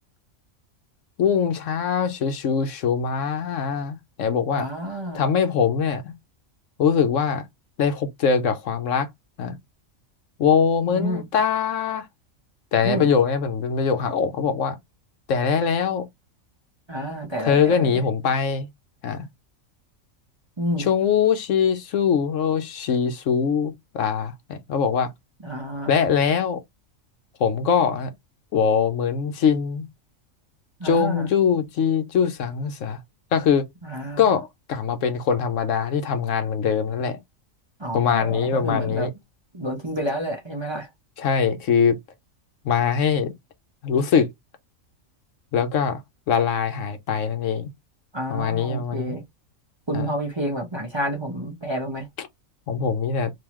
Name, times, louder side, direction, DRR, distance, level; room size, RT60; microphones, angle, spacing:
voice 1, 1.2-4.7 5.1-6.1 6.8-7.4 7.8-9.1 9.4-9.6 10.4-12.1 12.7-14.8 15.3-16.1 17.4-18.7 19.0-19.3 20.8-25.1 25.9-26.6 27.4-28.1 28.5-29.9 30.8-33.0 33.3-33.7 34.2-37.2 37.9-39.1 41.2-42.0 42.6-43.3 43.8-44.3 45.5-46.0 46.3-47.7 48.3-49.2 49.9-50.1 52.2-52.3 52.7-53.3, left 6 dB, 70° left, 1.0 m, -22 dB
voice 2, 4.5-5.3 10.8-11.2 12.8-13.1 16.9-18.0 20.6-20.9 25.4-25.9 30.8-31.3 33.8-34.3 37.8-39.1 39.5-40.9 48.1-49.2 49.9-52.1, right 1 dB, 25° right, 0.8 m, -29 dB
3.6 x 2.7 x 3.0 m
omnidirectional pair, 1.4 m